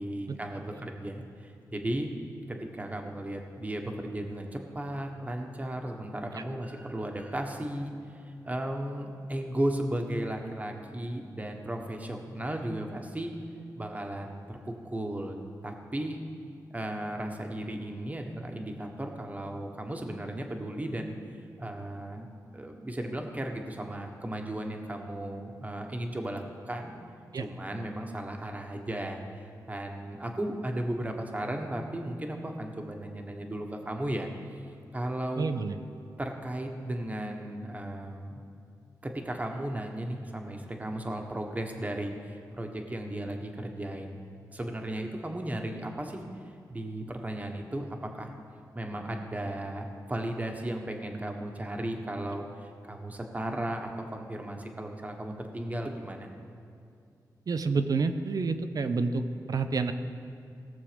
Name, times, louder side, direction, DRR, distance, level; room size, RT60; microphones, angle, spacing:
voice 1, 0.0-2.1 2.5-13.3 13.8-16.2 16.7-21.1 21.6-22.3 22.5-27.0 27.3-34.6 34.9-35.5 36.2-38.5 39.0-44.2 44.5-46.2 46.7-47.8 48.2-48.3 48.7-52.4 52.9-56.3, right 1 dB, 20° right, 3 dB, 1.4 m, -35 dB
voice 2, 35.4-35.7 57.5-59.9, right 4 dB, 60° right, 9 dB, 0.7 m, -29 dB
18.0 x 6.8 x 5.2 m, 2.4 s
cardioid pair, 75°, 7 cm